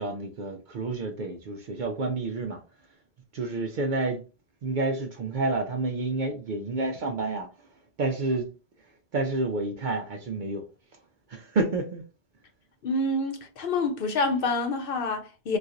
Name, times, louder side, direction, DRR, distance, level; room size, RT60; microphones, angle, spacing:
voice 1, 0.0-2.6 3.3-4.2 4.6-7.5 8.0-8.5 9.1-10.7 11.3-12.0, right 3 dB, 60° right, 0.6 m, -29 dB
voice 2, 12.8-15.6, left 2 dB, 60° left, 0.8 m, -27 dB
4.1 x 2.3 x 2.5 m
omnidirectional pair, 1.1 m